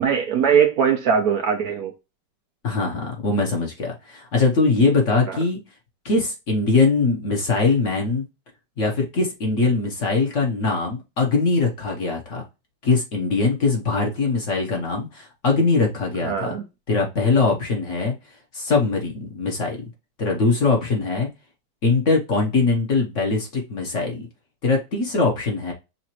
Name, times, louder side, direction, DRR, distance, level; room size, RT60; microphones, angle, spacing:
voice 1, 0.0-1.9 5.3-5.4 16.2-16.6, right 7 dB, 70° right, 0.9 m, -20 dB
voice 2, 2.6-5.6 6.0-8.2 8.8-12.4 12.8-16.6 16.9-18.1 18.5-19.9 20.2-21.3 21.8-24.3 24.6-25.7, left 3 dB, 50° left, 1.2 m, -21 dB
5.8 x 2.6 x 2.9 m
omnidirectional pair, 2.0 m